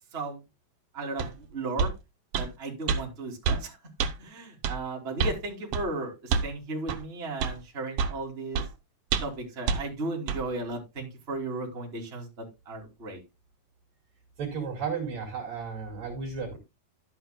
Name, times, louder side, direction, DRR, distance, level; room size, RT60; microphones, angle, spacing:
voice 1, 0.1-0.4 0.9-1.9 2.4-3.8 4.2-8.6 9.2-13.2, right 2 dB, 20° right, -1 dB, 2.7 m, -35 dB
sound 1, 1.2-1.3 1.8-2.0 2.3-2.5 2.9-3.0 3.4-3.6 4.0-4.1 4.6-4.8 5.2-5.4 5.7-5.9 6.3-6.5 6.9-7.0 7.4-7.6 8.0-8.2 8.5-8.7 9.1-9.4 9.7-9.8 10.3-10.4, right 6 dB, 90° right, 1.3 m, -27 dB
voice 2, 14.4-16.6, right 6 dB, 50° right, 3 dB, 3.4 m, -33 dB
12.5 x 8.7 x 2.2 m, 0.24 s
omnidirectional pair, 4.2 m